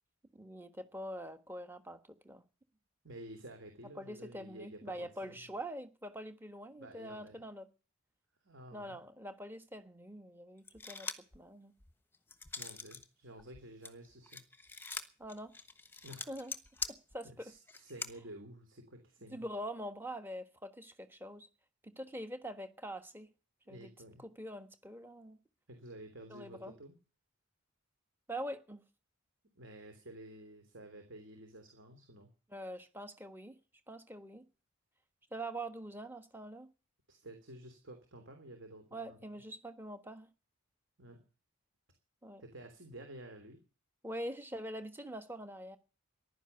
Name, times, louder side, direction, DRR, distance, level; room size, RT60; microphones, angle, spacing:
voice 1, 0.3-2.4 4.0-7.7 8.7-11.7 15.2-15.5 16.3-16.5 16.9-17.5 19.3-21.5 21.8-23.3 23.7-23.9 24.2-25.4 26.3-26.7 28.3-28.8 32.5-33.6 33.9-34.4 35.3-36.7 38.9-40.3 42.2-42.4 44.0-45.8, right 1 dB, 10° right, 1.3 m, -44 dB
voice 2, 3.0-5.5 6.8-7.4 8.4-9.0 12.6-14.4 16.0-16.4 17.2-19.4 23.7-24.2 25.7-27.0 29.5-32.3 37.1-39.2 41.0-41.2 42.4-43.6, right 1 dB, 55° right, 3.2 m, -51 dB
sound 1, 10.7-11.4 11.8-13.0 13.4-18.1, left 4 dB, 10° left, 1.2 m, -43 dB
15.0 x 11.5 x 6.9 m
head